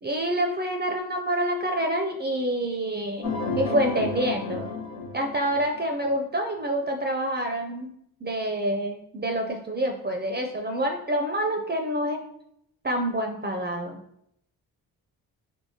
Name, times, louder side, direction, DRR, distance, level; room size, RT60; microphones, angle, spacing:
voice 1, 0.0-4.7 5.1-7.9 8.2-12.2 12.8-14.0, right 1 dB, 25° right, 3 dB, 0.4 m, -27 dB
sound 1, 3.2-6.0, left 3 dB, 90° left, 0.6 m, -32 dB
3.5 x 2.9 x 2.7 m, 0.73 s
supercardioid pair, 50°, 41 cm